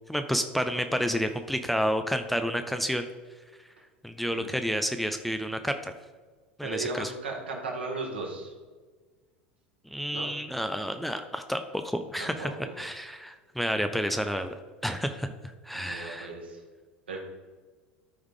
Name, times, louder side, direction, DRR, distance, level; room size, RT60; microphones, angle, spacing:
voice 1, 0.1-3.1 4.0-5.9 6.6-7.1 9.9-14.6 14.8-15.3 15.6-16.3, equal, ahead, 7 dB, 0.5 m, -30 dB
voice 2, 6.6-8.5 10.1-10.3 12.2-12.8 15.7-16.6 17.1-17.2, right 3 dB, 75° right, -1 dB, 1.8 m, -36 dB
13.0 x 4.8 x 3.6 m, 1.4 s
figure-of-eight pair, 75°, 6 cm